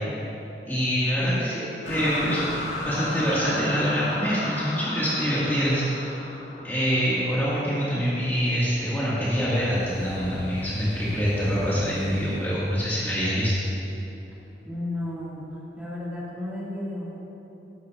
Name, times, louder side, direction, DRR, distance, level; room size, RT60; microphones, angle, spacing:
voice 1, 0.7-2.4 2.8-6.2 6.6-13.6, equal, 10° left, -10 dB, 1.9 m, -25 dB
sound 1, 1.8-7.9, left 1 dB, 90° left, 2.0 m, -34 dB
sound 2, 7.6-15.6 16.0-16.4, equal, 60° right, 1.8 m, -45 dB
voice 2, 14.6-15.4 15.8-17.2, left 1 dB, 5° right, -8 dB, 2.1 m, -33 dB
13.0 x 12.0 x 2.5 m, 2.9 s
head